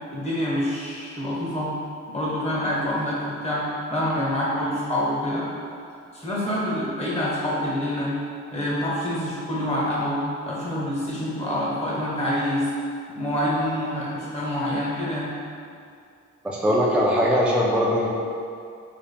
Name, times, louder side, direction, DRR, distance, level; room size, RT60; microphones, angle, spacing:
voice 1, 0.1-1.7 2.1-5.5 6.1-8.1 8.5-12.7 13.1-15.3, left 1 dB, 20° left, -6 dB, 1.2 m, -26 dB
voice 2, 16.4-18.1, equal, 5° right, -4 dB, 0.4 m, -21 dB
3.5 x 3.4 x 2.2 m, 2.4 s
cardioid pair, 60°, 29 cm